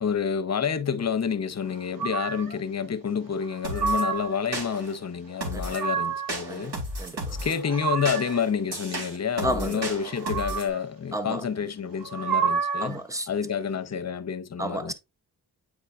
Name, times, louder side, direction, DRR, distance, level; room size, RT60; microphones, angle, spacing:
voice 1, 0.0-6.7 7.4-13.0 13.3-14.9, left 7 dB, 40° left, 0.7 m, -29 dB
sound 1, 2.0-2.6 3.4-4.4 5.4-6.4 7.3-8.4 10.0-10.8 12.0-13.0, right 6 dB, 60° right, 1.2 m, -29 dB
sound 2, 3.6-4.0 4.5-5.0 5.4-5.9 6.3-7.6 8.1-10.7, right 1 dB, 80° right, 2.4 m, -34 dB
voice 2, 6.5-7.4 9.4-9.8 11.1-11.4 12.8-13.3 14.6-14.9, right 1 dB, 10° right, 0.7 m, -32 dB
8.2 x 4.9 x 2.4 m
wide cardioid pair, 115°, 39 cm